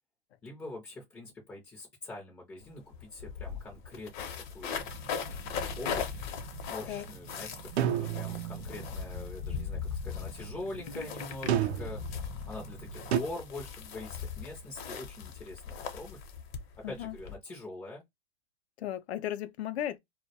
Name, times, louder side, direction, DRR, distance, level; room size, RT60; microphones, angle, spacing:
voice 1, 0.4-4.7 5.8-6.2 6.7-16.2 16.9-18.0, left 2 dB, 10° left, 0.4 m, -44 dB
sound 1, 2.6-2.7 2.9-17.4, left 7 dB, 50° left, 0.6 m, -39 dB
sound 2, 4.8-13.3, right 7 dB, 60° right, 0.8 m, -47 dB
sound 3, 7.8-8.7 11.5-12.1 13.1-13.2, right 10 dB, 85° right, 0.5 m, -29 dB
voice 2, 16.8-17.2 18.8-20.0, left 12 dB, 90° left, 0.5 m, -35 dB
2.2 x 2.1 x 2.7 m
hypercardioid pair, 140°, 32 cm